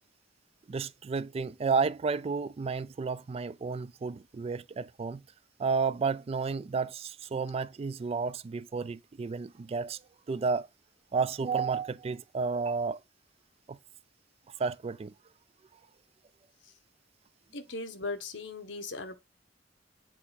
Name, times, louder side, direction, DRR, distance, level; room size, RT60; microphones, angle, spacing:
voice 1, 0.7-5.2 5.6-10.0 10.3-10.7 11.1-13.0 13.7-13.8 14.6-15.1, right 5 dB, 35° right, 0.3 m, -31 dB
voice 2, 17.5-19.1, left 3 dB, 90° left, 1.1 m, -38 dB
7.6 x 3.6 x 4.0 m
head